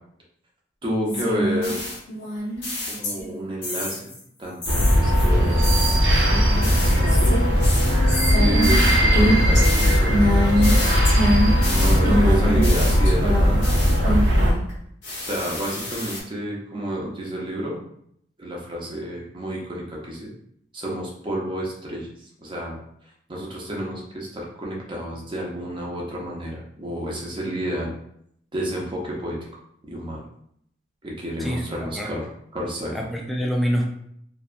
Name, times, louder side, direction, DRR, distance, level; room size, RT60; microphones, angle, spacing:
voice 1, 0.8-1.8 2.9-4.0 4.4-7.3 8.3-11.0 11.7-14.2 15.2-17.8 18.4-20.3 20.7-22.8 23.3-27.9 28.5-29.4 29.9-30.2 31.0-32.3 32.5-33.0, right 1 dB, 30° right, -3 dB, 0.7 m, -30 dB
sound 1, 1.1-3.4 3.6-4.2 4.6-14.7 15.0-16.2, equal, 75° left, 0.9 m, -25 dB
sound 2, 4.7-14.5, equal, 80° right, 0.7 m, -18 dB
sound 3, 6.5-13.2 13.5-13.6, left 4 dB, 40° left, 0.6 m, -33 dB
voice 2, 31.4-32.1 32.9-33.9, equal, ahead, 0 dB, 0.3 m, -26 dB
2.7 x 2.3 x 2.4 m, 0.70 s
head